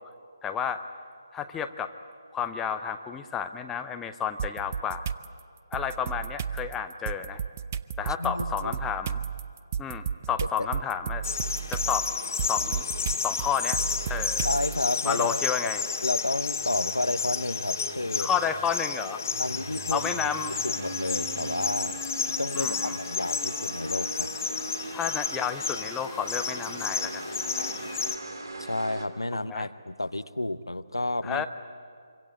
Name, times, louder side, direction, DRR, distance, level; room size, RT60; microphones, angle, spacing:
voice 1, 0.4-0.8 1.3-1.9 2.3-5.1 5.7-7.4 8.0-9.2 9.8-11.2 11.7-12.1 12.5-12.9 13.2-13.8 14.1-14.5 15.0-15.8 18.2-19.2 19.9-20.5 22.5-23.0 24.9-27.2 29.5-29.7 31.2-31.5, left 7 dB, 10° left, 7 dB, 0.6 m, -31 dB
sound 1, 4.4-5.3 5.7-14.9, right 7 dB, 35° right, 0.6 m, -33 dB
voice 2, 8.2-8.7 10.6-10.7 14.4-15.7 16.0-18.3 19.4-20.3 20.6-22.0 22.2-24.3 28.6-31.5, left 1 dB, 80° left, 13 dB, 0.9 m, -31 dB
sound 2, 11.2-28.2, left 5 dB, 45° left, 1.9 m, -32 dB
sound 3, 16.6-29.1, right 2 dB, 65° right, 3.1 m, -40 dB
25.0 x 25.0 x 8.2 m, 2.1 s
figure-of-eight pair, 145°, 2 cm